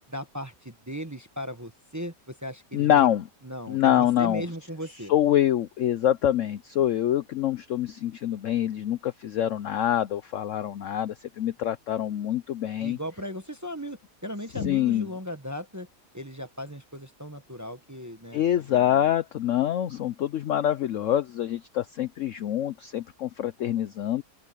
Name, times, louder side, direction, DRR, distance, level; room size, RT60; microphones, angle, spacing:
voice 1, 0.1-3.1 3.4-5.1 12.8-15.9 16.1-19.0, equal, 10° right, 1.0 m, -37 dB
voice 2, 2.7-3.2 3.7-4.4 5.1-13.0 14.6-15.1 18.3-24.2, left 11 dB, 70° left, 0.7 m, -25 dB
open air
omnidirectional pair, 1.9 m